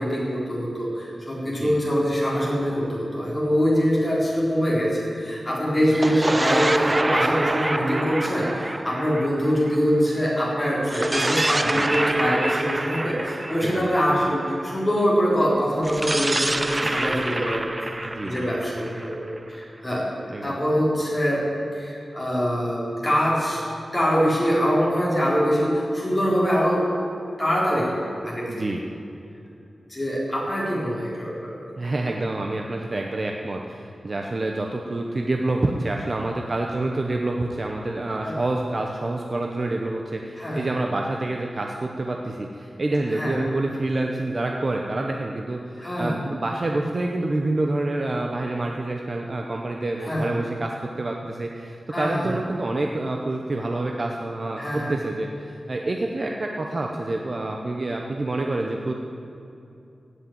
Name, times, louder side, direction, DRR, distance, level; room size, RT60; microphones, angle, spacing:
voice 1, 0.0-17.7 18.2-19.2 19.5-20.1 20.4-21.4 21.7-23.6 23.9-26.9 27.4-28.6 29.9-31.7 38.2-38.3 40.4-40.7 43.1-43.4 45.8-46.2 50.0-50.4 51.9-52.3 54.6-54.9, equal, 20° left, -6 dB, 4.0 m, -24 dB
voice 2, 1.4-1.8 5.9-6.0 11.7-11.8 13.6-13.9 18.0-18.5 20.3-20.6 28.5-28.8 31.8-58.9, right 2 dB, 40° right, 1 dB, 0.9 m, -27 dB
sound 1, 5.8-10.3 10.8-14.8 15.8-19.6, right 1 dB, 20° right, 0.5 m, -27 dB
16.5 x 6.6 x 9.4 m, 2.7 s
wide cardioid pair, 135°, 0 cm